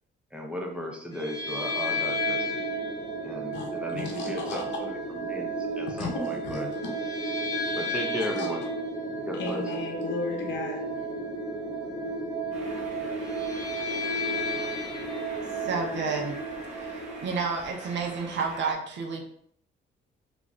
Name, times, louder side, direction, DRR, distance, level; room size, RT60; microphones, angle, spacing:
voice 1, 0.3-2.6 3.2-6.7 7.8-8.6 9.3-9.6, left 1 dB, 5° right, 1 dB, 0.7 m, -36 dB
sound 1, 1.1-17.2, right 1 dB, 20° left, 0.9 m, -32 dB
voice 2, 3.5-4.6 5.9-6.9 7.7-7.8 8.2-8.5 9.3-11.1, left 4 dB, 65° left, 0 dB, 0.7 m, -35 dB
sound 2, 12.5-18.7, right 2 dB, 35° right, 1.0 m, -44 dB
voice 3, 15.6-16.4 16.8-16.9 17.2-19.3, right 5 dB, 65° right, 1 dB, 0.7 m, -30 dB
2.6 x 2.4 x 3.2 m, 0.65 s
cardioid pair, 90°, 20 cm